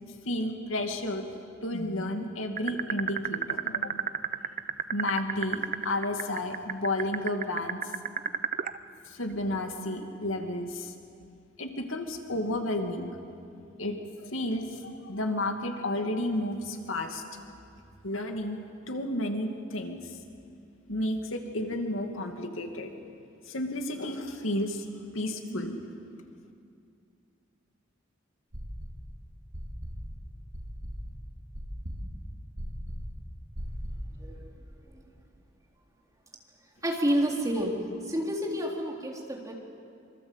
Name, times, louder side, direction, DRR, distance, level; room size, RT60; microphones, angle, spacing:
voice 1, 0.0-1.3 1.6-4.0 4.9-7.9 9.1-10.9 11.6-13.1 13.8-17.2 18.0-20.0 20.9-22.9 23.5-25.8, left 1 dB, 90° left, 4 dB, 2.5 m, -32 dB
sound 1, 2.6-8.8, right 8 dB, 45° right, 0.7 m, -29 dB
sound 2, 28.5-29.1 29.5-34.2, equal, 80° right, 4.3 m, -38 dB
voice 2, 36.8-37.7 38.1-39.5, equal, 15° right, -1 dB, 3.8 m, -29 dB
26.0 x 25.0 x 8.2 m, 2.4 s
head